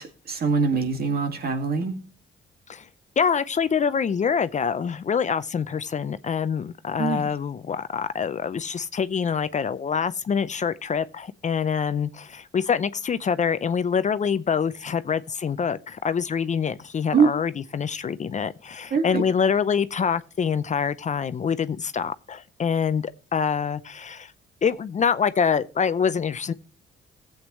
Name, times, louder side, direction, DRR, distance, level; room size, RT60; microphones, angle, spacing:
voice 1, 0.0-1.9 7.0-7.2 17.1-17.3 18.9-19.2, right 5 dB, 50° right, 2.0 m, -23 dB
voice 2, 3.2-24.3 24.6-26.5, left 6 dB, 35° left, 0.6 m, -25 dB
15.5 x 8.0 x 3.1 m
cardioid pair, 90°, 20 cm